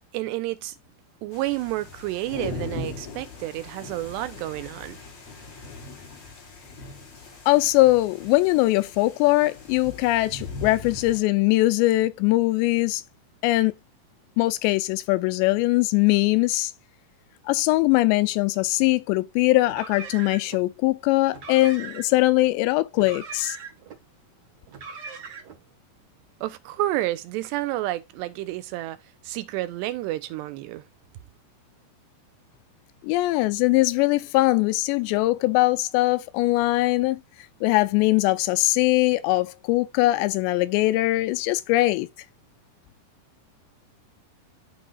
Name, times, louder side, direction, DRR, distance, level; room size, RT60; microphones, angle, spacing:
voice 1, 0.1-0.8 1.2-5.0 26.4-29.0 29.2-30.8, right 16 dB, 85° right, 2.8 m, -30 dB
sound 1, 1.3-11.2, left 3 dB, 55° left, 5.5 m, -40 dB
voice 2, 7.5-13.0 13.4-13.7 14.4-16.7 17.5-23.6 33.0-37.2 37.6-42.1, left 19 dB, 85° left, 2.8 m, -21 dB
Car, 19.6-20.6 21.3-22.3 22.9-24.0 24.7-25.6, right 5 dB, 50° right, 2.3 m, -40 dB
12.5 x 4.2 x 2.4 m
omnidirectional pair, 5.0 m